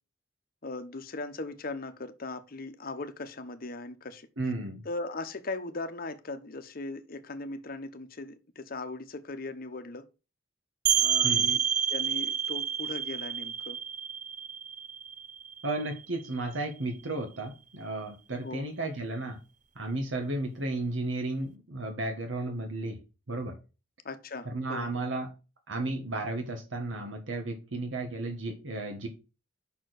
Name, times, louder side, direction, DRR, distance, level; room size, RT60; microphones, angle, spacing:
voice 1, 0.6-4.3 4.8-10.1 10.9-11.6 11.9-13.8 18.4-18.7 24.0-24.9, left 2 dB, 50° left, 0.9 m, -39 dB
voice 2, 4.4-4.8 11.2-11.5 15.6-19.4 19.7-23.0 23.3-23.6 24.4-25.3 25.7-29.1, right 2 dB, 85° right, 1.3 m, -33 dB
sound 1, 10.9-16.3, right 8 dB, 40° right, 0.6 m, -29 dB
5.9 x 4.5 x 6.2 m
head